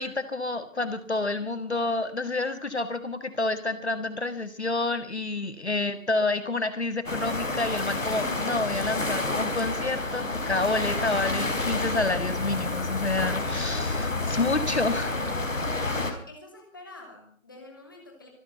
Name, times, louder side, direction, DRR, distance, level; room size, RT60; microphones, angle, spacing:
voice 1, 0.0-15.2, left 3 dB, 55° left, 11 dB, 1.7 m, -29 dB
voice 2, 5.6-6.1 16.0-18.3, left 2 dB, 15° left, 2 dB, 2.8 m, -47 dB
sound 1, 7.1-16.1, left 2 dB, 70° left, 4.6 m, -29 dB
26.0 x 10.0 x 5.5 m, 0.43 s
figure-of-eight pair, 180°, 40 cm